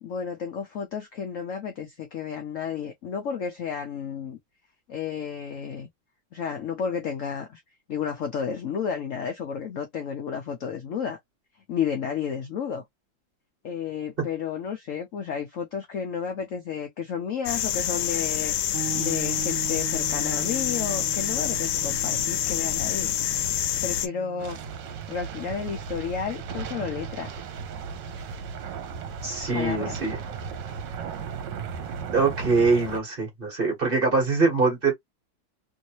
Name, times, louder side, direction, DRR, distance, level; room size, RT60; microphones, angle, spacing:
voice 1, 0.0-4.4 4.9-5.9 6.3-7.6 7.9-11.2 11.7-12.8 13.6-18.5 18.9-23.1 23.8-24.6 25.1-27.4 29.5-30.1, left 7 dB, 65° left, 0.8 m, -32 dB
sound 1, 17.5-24.1, left 10 dB, 80° left, 1.3 m, -27 dB
sound 2, 18.7-28.4, right 7 dB, 50° right, 1.6 m, -40 dB
sound 3, 24.4-33.0, right 6 dB, 75° right, 1.3 m, -36 dB
voice 2, 29.2-30.2 32.1-34.9, right 4 dB, 30° right, 1.4 m, -23 dB
3.2 x 2.6 x 2.9 m
omnidirectional pair, 2.0 m